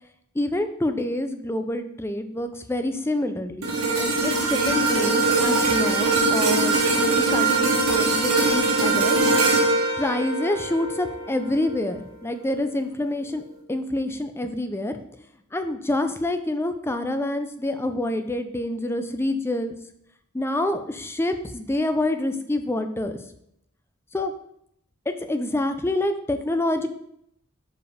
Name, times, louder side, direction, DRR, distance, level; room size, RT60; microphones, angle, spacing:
voice 1, 0.3-3.7 4.0-9.2 10.0-13.4 13.7-14.9 15.5-19.8 20.3-23.2 24.1-24.3 25.1-26.9, left 1 dB, 10° left, 8 dB, 0.5 m, -27 dB
sound 1, 3.6-12.0 12.4-12.6, right 3 dB, 75° right, 1.6 m, -22 dB
5.2 x 4.9 x 5.0 m, 0.75 s
head